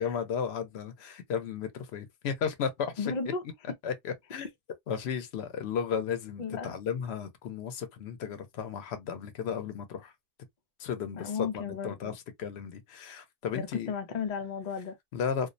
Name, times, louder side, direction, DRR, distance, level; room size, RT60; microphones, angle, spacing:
voice 1, 0.0-3.1 3.8-4.5 4.9-10.1 10.8-13.9 15.1-15.5, left 7 dB, 90° left, 0.9 m, -34 dB
voice 2, 3.0-3.4 6.4-6.7 11.1-12.2 13.5-14.9, left 5 dB, 50° left, 0.6 m, -34 dB
2.4 x 2.0 x 2.5 m
omnidirectional pair, 1.1 m